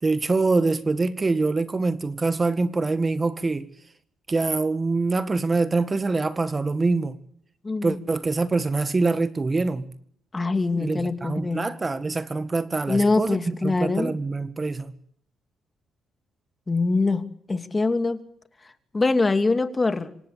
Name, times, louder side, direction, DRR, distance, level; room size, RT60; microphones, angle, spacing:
voice 1, 0.0-3.7 4.3-7.2 7.8-9.9 10.8-14.9, right 3 dB, 25° right, 12 dB, 1.8 m, -24 dB
voice 2, 7.6-8.0 10.3-11.6 12.9-14.1 16.7-17.2 17.5-18.2 18.9-20.1, left 3 dB, 25° left, 9 dB, 2.7 m, -23 dB
26.5 x 26.0 x 8.7 m, 0.65 s
cardioid pair, 90°, 0 cm